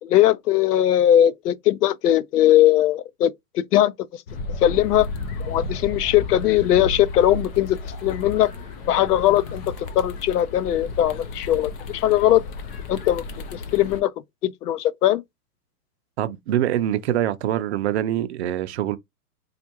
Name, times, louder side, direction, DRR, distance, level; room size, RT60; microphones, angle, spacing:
voice 1, 0.0-4.2 4.6-5.1 5.4-8.5 8.9-12.4 12.9-13.2 13.5-14.1 14.4-15.2, left 12 dB, 90° left, 0.6 m, -20 dB
sound 1, 4.3-14.0, left 3 dB, 40° left, 0.8 m, -34 dB
sound 2, 4.4-10.2, left 2 dB, 60° left, 2.0 m, -36 dB
voice 2, 16.2-19.0, right 12 dB, 45° right, 0.5 m, -24 dB
4.4 x 2.4 x 2.8 m
hypercardioid pair, 150°, 45 cm